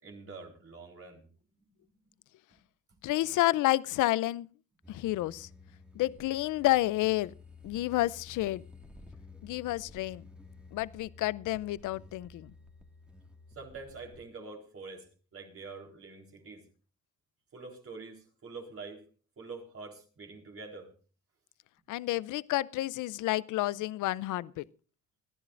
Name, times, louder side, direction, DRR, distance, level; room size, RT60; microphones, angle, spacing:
voice 1, 0.0-1.2 13.6-15.0 15.3-16.6 17.5-19.0 19.4-20.9, right 4 dB, 50° right, 3.9 m, -45 dB
voice 2, 3.0-4.5 4.9-5.5 5.9-7.3 7.6-8.6 9.4-10.2 10.7-12.5 21.9-24.6, left 16 dB, 85° left, 0.6 m, -30 dB
sound 1, 4.8-14.3, left 4 dB, 5° right, 2.0 m, -53 dB
28.0 x 11.0 x 2.6 m
cardioid pair, 90°, 30 cm